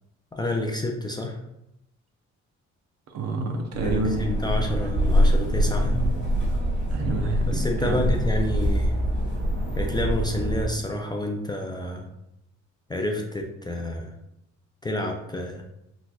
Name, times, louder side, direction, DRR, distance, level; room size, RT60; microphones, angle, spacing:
voice 1, 0.3-1.4 3.8-6.0 7.5-8.9 9.8-12.1 12.9-14.1 14.8-15.6, left 1 dB, 15° left, 1 dB, 0.3 m, -29 dB
voice 2, 3.1-4.3 6.9-8.0, right 3 dB, 60° right, 3 dB, 0.6 m, -28 dB
sound 1, 3.7-10.7, equal, 40° right, 1.0 m, -24 dB
4.1 x 2.3 x 2.3 m, 0.84 s
cardioid pair, 90°, 30 cm